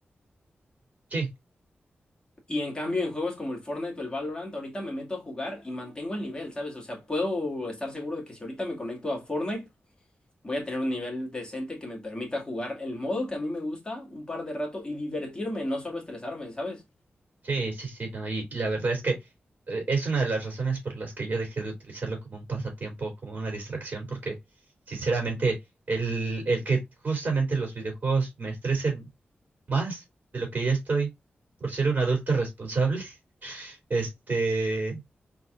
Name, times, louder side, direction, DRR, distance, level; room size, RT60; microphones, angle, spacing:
voice 1, 2.5-9.7 10.4-16.8, left 1 dB, 20° left, 2.1 m, -32 dB
voice 2, 17.4-19.2 19.7-24.3 24.9-25.6 25.9-29.0 29.7-30.0 30.3-31.1 31.6-33.2 33.4-35.0, right 4 dB, 45° right, 2.8 m, -28 dB
4.1 x 3.9 x 2.5 m
wide cardioid pair, 105°, 4 cm